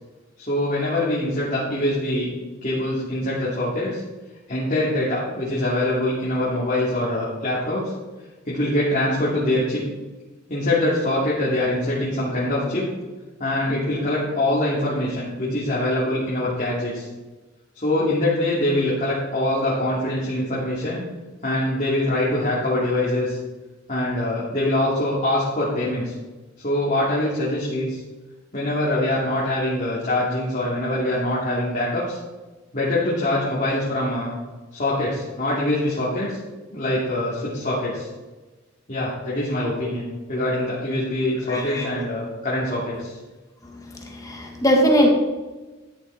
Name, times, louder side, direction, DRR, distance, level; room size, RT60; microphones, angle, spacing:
voice 1, 0.4-2.3 2.6-4.0 4.5-7.9 8.4-9.8 10.5-12.9 13.4-17.1 17.7-21.0 21.4-23.4 23.9-26.1 26.6-28.0 28.5-32.2 32.7-34.3 34.7-36.4 36.7-38.1 38.9-43.2, left 1 dB, 40° left, -8 dB, 3.0 m, -24 dB
voice 2, 41.5-41.9 44.1-45.1, equal, 15° left, 0 dB, 1.8 m, -19 dB
13.5 x 10.0 x 4.3 m, 1.2 s
head